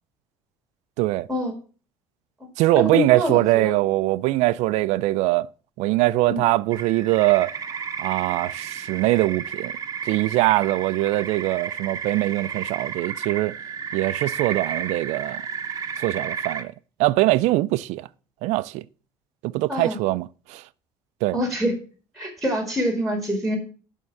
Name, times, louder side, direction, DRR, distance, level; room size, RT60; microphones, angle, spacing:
voice 1, 1.0-1.3 2.6-5.5 5.8-7.5 8.0-9.7 10.1-13.6 13.9-15.4 16.0-16.7 17.0-18.1 18.4-18.8 19.4-20.6 21.2-21.4, right 18 dB, 80° right, 0.4 m, -22 dB
voice 2, 2.7-3.8 6.3-6.4 19.7-20.0 21.3-21.7 22.1-23.6, equal, ahead, 1.9 m, -25 dB
sound 1, 6.7-16.6, right 7 dB, 30° right, 0.9 m, -32 dB
11.0 x 3.6 x 7.0 m
cardioid pair, 135°, 12 cm